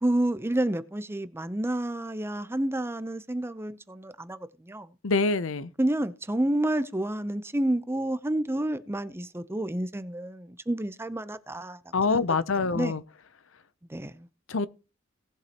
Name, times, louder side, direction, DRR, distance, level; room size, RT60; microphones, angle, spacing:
voice 1, 0.0-4.9 5.8-11.8 12.1-12.2 12.7-12.9 13.9-14.3, right 1 dB, 10° right, 0.6 m, -29 dB
voice 2, 5.0-5.7 11.9-13.0 14.5-14.7, left 4 dB, 65° left, 0.7 m, -25 dB
18.5 x 7.4 x 3.0 m
head